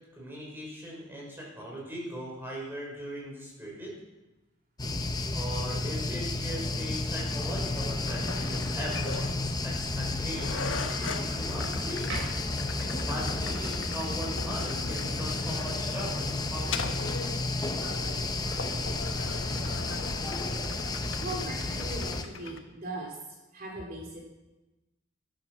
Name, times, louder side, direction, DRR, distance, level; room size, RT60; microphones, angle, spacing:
voice 1, 0.2-4.0 5.3-10.7 11.4-12.1 12.8-17.2, equal, 10° right, -4 dB, 5.7 m, -39 dB
sound 1, 4.8-22.2, left 2 dB, 20° left, 0.9 m, -32 dB
sound 2, 8.1-22.6, left 3 dB, 80° left, 1.4 m, -40 dB
sound 3, 9.0-9.4 10.0-10.1 10.6-11.5 12.0-12.7 16.2-17.6 19.0-19.5, right 1 dB, 85° right, 6.9 m, -42 dB
voice 2, 21.2-23.2 23.5-24.2, right 2 dB, 50° right, -1 dB, 3.5 m, -39 dB
14.0 x 12.0 x 6.2 m, 1.0 s
head